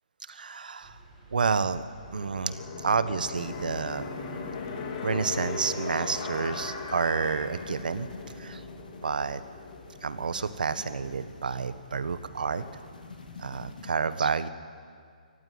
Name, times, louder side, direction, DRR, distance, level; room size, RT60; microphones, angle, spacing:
voice 1, 0.3-0.9 1.3-1.8 2.1-4.0 5.0-8.1 8.4-8.6 9.0-9.4 10.0-12.6 13.4-14.5, right 5 dB, 85° right, 13 dB, 1.4 m, -29 dB
sound 1, 0.8-13.8, right 1 dB, 15° right, 7.8 m, -53 dB
sound 2, 2.1-12.8, left 4 dB, 30° left, 2.6 m, -39 dB
sound 3, 3.3-13.9, left 4 dB, 85° left, 2.7 m, -49 dB
23.5 x 15.0 x 9.6 m, 2.1 s
hypercardioid pair, 170°, 5 cm